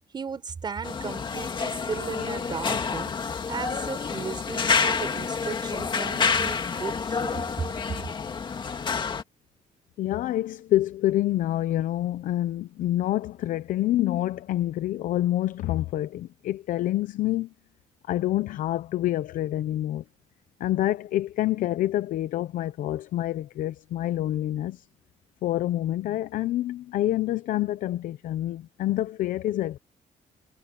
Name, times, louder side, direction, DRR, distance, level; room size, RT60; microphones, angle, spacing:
voice 1, 0.1-3.1 3.5-7.4, right 5 dB, 35° right, 4.2 m, -35 dB
sound 1, 0.8-9.2, left 5 dB, 35° left, 2.1 m, -28 dB
voice 2, 10.0-17.5 18.1-20.0 20.6-24.9 25.4-29.8, left 14 dB, 80° left, 0.8 m, -27 dB
cardioid pair, 125°, 14 cm